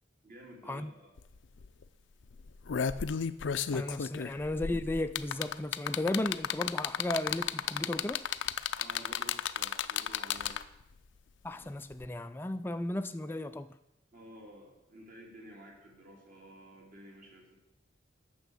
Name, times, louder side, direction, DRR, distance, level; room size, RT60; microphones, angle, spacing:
voice 1, 0.2-1.1 8.8-10.6 14.1-17.6, equal, 45° right, 3.0 m, -52 dB
Rapidly pressing a clicker, 1.2-1.3 1.6-1.8 2.4-10.8 12.0-12.1, left 8 dB, 75° left, 0.5 m, -33 dB
voice 2, 3.7-8.3 11.4-13.7, left 1 dB, 10° left, 0.3 m, -35 dB
9.6 x 7.0 x 6.9 m
head